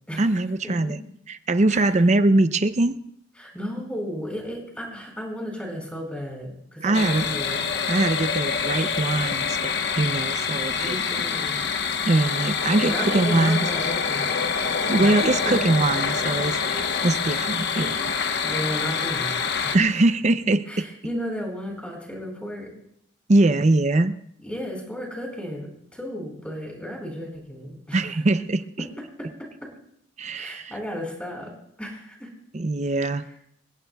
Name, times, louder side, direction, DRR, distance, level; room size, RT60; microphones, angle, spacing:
voice 1, 0.2-1.0 1.3-3.0 6.8-7.3 7.9-11.0 12.0-13.7 14.9-18.1 19.7-20.9 23.3-24.2 27.9-28.6 30.2-30.7 32.5-33.2, right 2 dB, 35° right, 11 dB, 0.5 m, -22 dB
voice 2, 3.4-7.6 10.8-11.6 12.8-14.3 15.0-15.2 15.4-15.6 18.4-19.8 20.7-22.7 24.4-28.1 28.8-28.9 29.2-29.7 30.3-31.5 31.8-32.3 33.1-33.3, equal, 5° left, 0 dB, 4.6 m, -34 dB
sound 1, 6.9-19.8, left 6 dB, 60° left, 1.1 m, -26 dB
27.5 x 15.5 x 2.3 m, 0.72 s
head